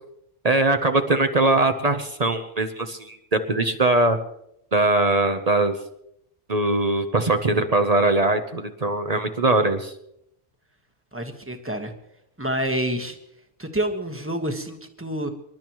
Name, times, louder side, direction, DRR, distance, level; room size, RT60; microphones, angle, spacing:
voice 1, 0.4-4.2 4.7-5.8 6.5-9.9, right 2 dB, 35° right, 7 dB, 0.9 m, -21 dB
voice 2, 11.1-11.9 12.4-13.2 13.6-15.3, right 1 dB, 10° right, 5 dB, 1.3 m, -28 dB
27.0 x 12.0 x 3.0 m, 0.78 s
omnidirectional pair, 1.2 m